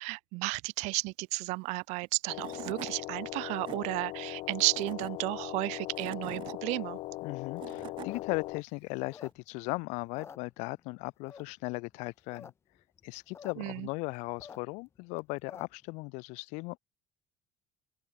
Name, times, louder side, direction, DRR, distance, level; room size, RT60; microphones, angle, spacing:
voice 1, 0.0-7.0 13.6-13.9, right 26 dB, 80° right, 3.0 m, -33 dB
Tools / Wood, 2.0-2.1 2.4-2.9 3.4-3.8 4.5-5.1 5.7-6.5 7.3-8.1, right 13 dB, 45° right, 4.4 m, -44 dB
sound 1, 2.3-8.6, left 18 dB, 60° left, 6.3 m, -40 dB
voice 2, 7.2-12.5 13.0-16.8, left 27 dB, 85° left, 1.8 m, -37 dB
sound 2, 7.9-9.7 10.0-10.9 11.3-11.7 12.1-12.5 12.8-12.9 13.0-13.5 13.9-15.9, left 6 dB, 20° left, 4.0 m, -50 dB
open air
cardioid pair, 175°, 12 cm